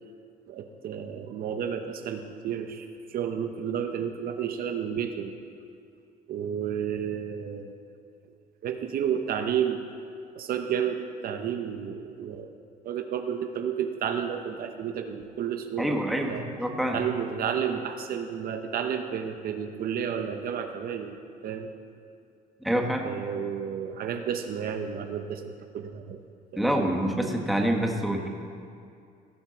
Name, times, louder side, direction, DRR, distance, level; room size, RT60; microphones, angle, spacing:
voice 1, 0.5-5.3 6.3-7.8 8.6-9.8 10.4-12.5 12.8-16.0 16.3-16.5 16.9-21.2 21.4-21.7 23.0-26.2 26.5-26.6, right 8 dB, 60° right, 6 dB, 0.8 m, -31 dB
voice 2, 15.8-17.0 22.6-23.1 26.6-28.3, right 1 dB, ahead, 1 dB, 1.4 m, -26 dB
17.0 x 5.8 x 7.1 m, 2.4 s
cardioid pair, 110°, 17 cm